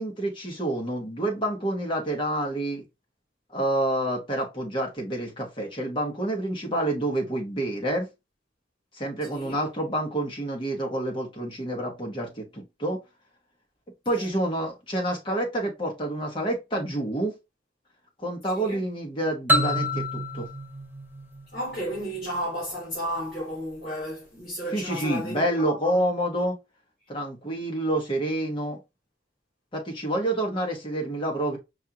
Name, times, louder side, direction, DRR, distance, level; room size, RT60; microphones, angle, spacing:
voice 1, 0.0-2.8 3.5-8.1 8.9-13.0 14.0-17.3 18.2-20.5 24.7-26.6 27.1-28.8 29.7-31.6, right 1 dB, 30° left, 1.1 m, -28 dB
voice 2, 18.5-18.9 21.5-26.0, equal, 55° left, 2.5 m, -33 dB
sound 1, 19.5-22.2, left 1 dB, 10° right, 0.5 m, -27 dB
5.4 x 2.5 x 2.8 m
head